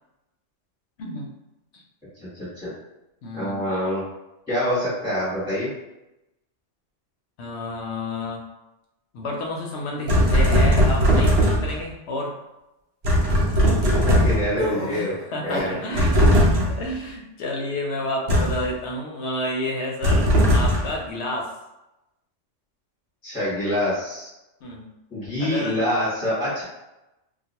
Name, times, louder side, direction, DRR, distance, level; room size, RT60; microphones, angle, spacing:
voice 1, 1.0-1.3 3.2-3.6 7.4-8.4 9.1-12.3 14.9-16.2 16.6-21.5 24.6-24.9 25.4-25.8, left 1 dB, 70° left, 0 dB, 0.8 m, -30 dB
voice 2, 2.2-2.7 3.3-4.0 4.5-5.7 13.9-15.1 15.4-16.1 23.2-24.3 25.1-26.6, left 1 dB, 5° left, -10 dB, 1.0 m, -26 dB
sound 1, 10.1-11.8 13.0-14.6 16.0-16.9 18.3-18.7 20.0-21.0, equal, 65° right, 0.8 m, -18 dB
sound 2, 14.6-15.9 16.2-16.7, right 1 dB, 35° right, 0.8 m, -31 dB
2.2 x 2.2 x 2.8 m, 0.95 s
omnidirectional pair, 1.3 m